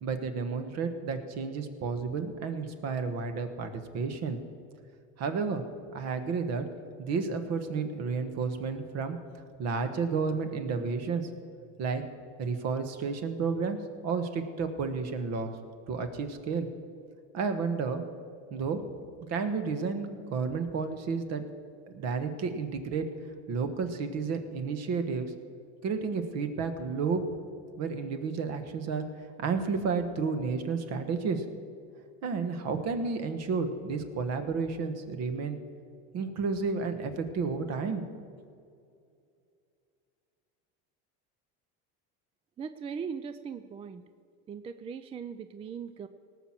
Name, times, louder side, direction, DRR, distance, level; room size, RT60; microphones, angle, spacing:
voice 1, 0.0-4.4 5.2-5.6 5.9-6.7 7.0-9.2 9.6-11.3 11.8-12.0 12.4-13.8 14.0-15.5 15.9-16.7 17.3-18.0 18.5-18.8 19.3-21.4 21.9-23.1 23.5-25.3 25.8-27.2 27.8-29.0 29.4-31.4 32.2-35.6 36.1-38.0, right 5 dB, 50° right, 8 dB, 1.4 m, -31 dB
voice 2, 42.6-44.0 44.5-46.1, right 6 dB, 20° right, 11 dB, 0.3 m, -39 dB
18.0 x 6.2 x 7.5 m, 2.4 s
supercardioid pair, 125°, 33 cm